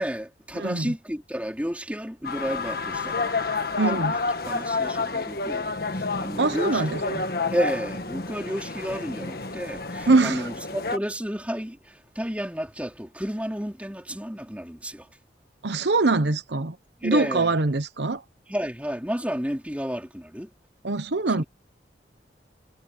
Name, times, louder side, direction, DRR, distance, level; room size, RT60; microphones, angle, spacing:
voice 1, 0.0-3.3 3.8-7.2 7.5-15.1 17.0-17.6 18.5-20.5 21.3-21.4, equal, 10° right, 4.2 m, -32 dB
voice 2, 0.5-0.9 3.8-4.1 6.4-7.2 10.1-10.5 15.6-16.8 17.0-18.2 20.8-21.4, right 3 dB, 80° right, 1.0 m, -23 dB
sound 1, 2.2-11.0, left 3 dB, 55° left, 1.5 m, -29 dB
head